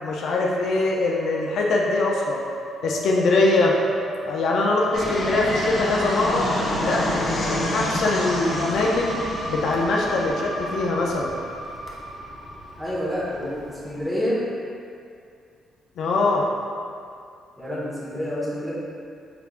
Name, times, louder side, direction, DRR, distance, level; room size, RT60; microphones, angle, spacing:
voice 1, 0.0-2.4 2.8-3.7 4.2-6.5 6.8-9.2 9.5-11.3 16.0-16.5, left 2 dB, 70° left, -2 dB, 0.4 m, -22 dB
Musical instrument, 1.1-12.9, equal, 55° right, 1.4 m, -35 dB
Fixed-wing aircraft airplane, 4.9-14.0, left 1 dB, 40° left, 0.8 m, -29 dB
voice 2, 12.8-14.4 17.6-18.7, equal, 5° right, -8 dB, 1.3 m, -28 dB
4.8 x 3.4 x 2.4 m, 2.3 s
cardioid pair, 90°, 0 cm